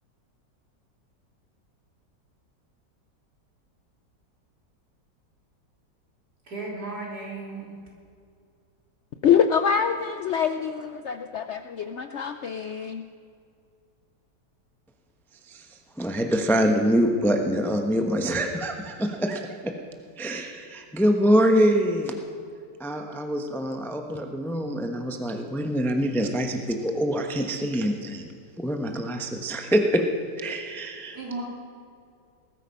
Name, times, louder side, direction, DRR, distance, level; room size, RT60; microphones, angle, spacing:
voice 1, 6.5-7.8 31.1-31.4, right 3 dB, 60° right, -4 dB, 4.2 m, -35 dB
voice 2, 9.2-13.1, left 7 dB, 85° left, 8 dB, 0.6 m, -25 dB
voice 3, 15.3-19.8 20.2-22.2 22.8-30.1 30.3-31.2, equal, ahead, 4 dB, 0.8 m, -25 dB
20.0 x 13.0 x 5.4 m, 2.3 s
omnidirectional pair, 1.9 m